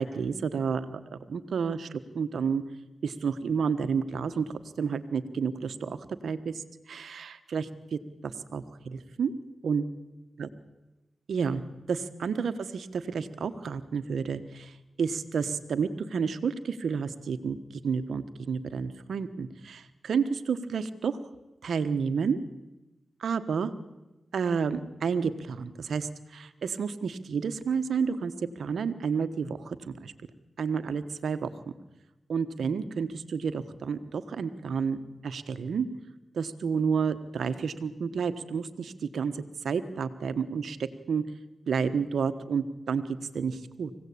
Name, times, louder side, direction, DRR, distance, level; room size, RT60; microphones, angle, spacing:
voice 1, 0.0-2.6 3.0-6.0 6.2-9.3 9.6-9.8 10.4-10.5 11.3-11.6 11.9-17.6 17.8-21.2 21.6-22.4 23.2-23.7 24.3-30.1 30.6-31.7 32.3-35.9 36.3-41.2 41.7-43.0 43.3-43.9, right 6 dB, 80° right, 11 dB, 1.4 m, -30 dB
24.5 x 17.0 x 8.7 m, 1.0 s
cardioid pair, 45°, 0 cm